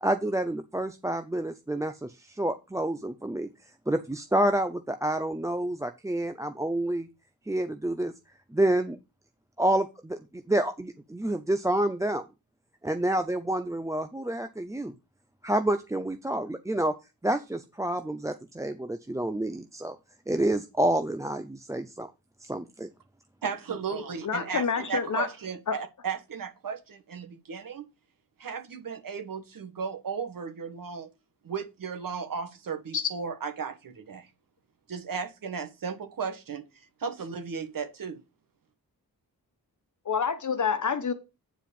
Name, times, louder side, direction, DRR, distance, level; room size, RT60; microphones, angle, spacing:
voice 1, 0.0-3.5 3.9-7.1 7.5-8.1 8.5-9.0 9.6-10.2 10.5-12.2 12.8-14.9 15.4-16.9 17.2-20.0 20.3-22.1 22.4-22.9, right 1 dB, 10° right, 0.5 m, -28 dB
voice 2, 23.4-27.8 28.4-31.1 31.4-34.3 34.9-36.6 37.0-38.2, right 6 dB, 65° right, 1.5 m, -35 dB
voice 3, 24.2-25.3 25.7-25.8 32.9-33.1 40.0-41.1, left 6 dB, 55° left, 1.3 m, -27 dB
9.1 x 4.7 x 5.3 m
wide cardioid pair, 125°, 35 cm